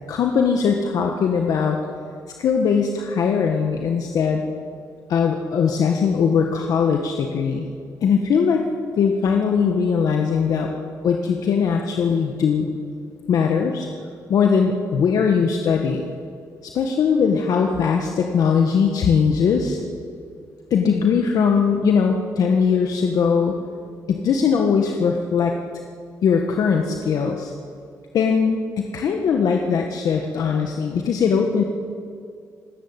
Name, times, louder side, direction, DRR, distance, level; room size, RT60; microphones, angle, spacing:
voice 1, 0.1-1.8 2.4-4.4 5.1-7.7 8.0-8.6 9.0-10.7 11.0-12.7 13.3-13.9 14.3-16.0 16.6-19.8 20.7-23.6 24.1-25.5 26.2-27.5 28.1-31.6, left 6 dB, 70° left, 2 dB, 1.6 m, -20 dB
27.0 x 13.0 x 8.3 m, 2.3 s
cardioid pair, 115°, 6 cm